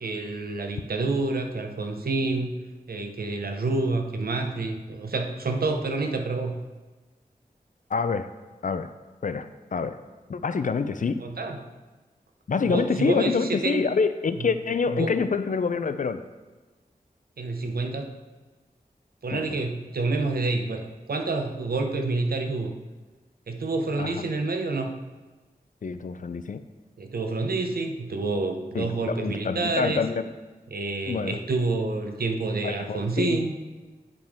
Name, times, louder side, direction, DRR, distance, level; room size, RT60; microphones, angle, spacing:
voice 1, 0.0-2.6 2.9-6.6 11.2-11.6 12.6-13.8 14.4-14.5 14.9-15.1 17.4-18.1 19.2-22.7 23.5-24.9 27.0-30.0 30.7-33.6, right 3 dB, 75° right, 5 dB, 0.8 m, -28 dB
voice 2, 7.9-8.3 8.6-8.9 9.2-10.0 10.3-11.2 12.5-16.2 19.3-19.4 24.0-24.2 25.8-26.6 28.7-30.3 31.1-31.4 32.6-33.4, left 5 dB, 55° left, 11 dB, 0.4 m, -26 dB
9.2 x 5.1 x 3.5 m, 1.2 s
wide cardioid pair, 65°, 16 cm